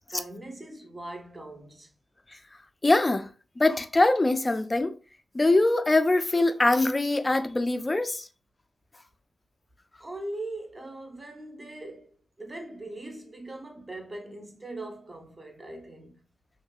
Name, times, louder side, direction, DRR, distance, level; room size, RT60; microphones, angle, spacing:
voice 1, 0.1-1.9 10.0-16.2, right 2 dB, 30° right, 0.8 m, -40 dB
voice 2, 2.8-3.3 3.6-4.9 5.3-8.3, left 2 dB, 25° left, 0.4 m, -23 dB
3.2 x 2.6 x 2.3 m
cardioid pair, 70°, 0 cm